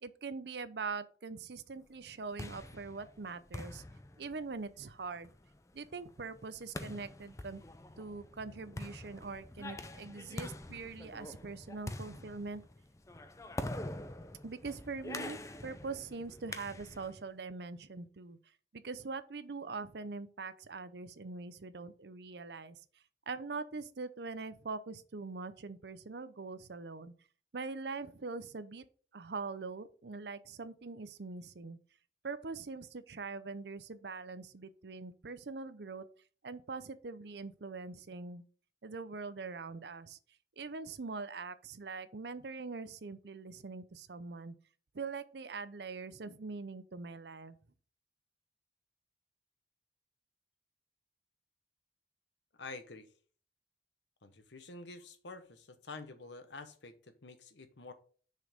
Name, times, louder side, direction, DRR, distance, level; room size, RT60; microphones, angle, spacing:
voice 1, 0.0-3.8 4.2-5.3 5.7-7.6 8.0-12.6 14.4-18.4 18.7-22.8 23.3-27.1 27.5-28.8 29.1-31.8 32.2-36.1 36.4-38.4 38.8-40.2 40.6-44.5 44.9-47.6, right 4 dB, 65° right, 0.6 m, -43 dB
sound 1, 2.0-17.2, left 1 dB, 15° left, 0.5 m, -45 dB
voice 2, 52.6-53.1 54.2-57.9, left 3 dB, 80° left, 1.1 m, -48 dB
6.5 x 5.3 x 5.1 m
head